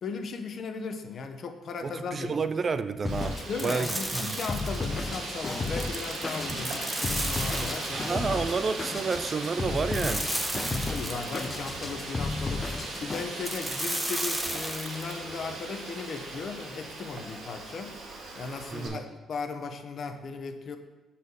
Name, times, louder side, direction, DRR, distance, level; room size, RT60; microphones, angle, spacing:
voice 1, 0.0-2.5 3.5-8.5 10.6-17.9 18.3-20.8, left 4 dB, 55° left, 6 dB, 0.8 m, -37 dB
voice 2, 1.8-4.4 7.9-10.2 10.5-10.8 18.7-19.0, right 4 dB, 40° right, 11 dB, 0.4 m, -30 dB
Drum kit, 3.0-13.3, left 3 dB, 30° left, 0.4 m, -34 dB
Wind, 3.1-18.9, right 2 dB, 80° right, 2.0 m, -38 dB
sound 1, 3.6-4.9 5.6-8.2 9.9-11.6 13.4-15.2, right 1 dB, 10° right, 0.7 m, -34 dB
6.4 x 4.3 x 5.4 m, 1.2 s
cardioid pair, 90°, 0 cm